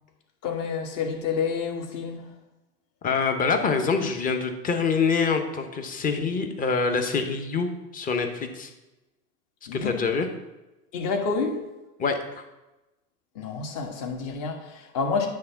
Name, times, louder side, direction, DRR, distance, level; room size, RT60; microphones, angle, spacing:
voice 1, 0.4-2.3 9.7-9.9 10.9-11.6 13.3-15.3, left 5 dB, 40° left, 3 dB, 1.6 m, -29 dB
voice 2, 3.0-7.7 7.9-8.7 9.7-10.3 12.0-12.4, left 5 dB, 15° left, 6 dB, 0.8 m, -25 dB
9.6 x 3.5 x 5.7 m, 1.0 s
hypercardioid pair, 105°, 48 cm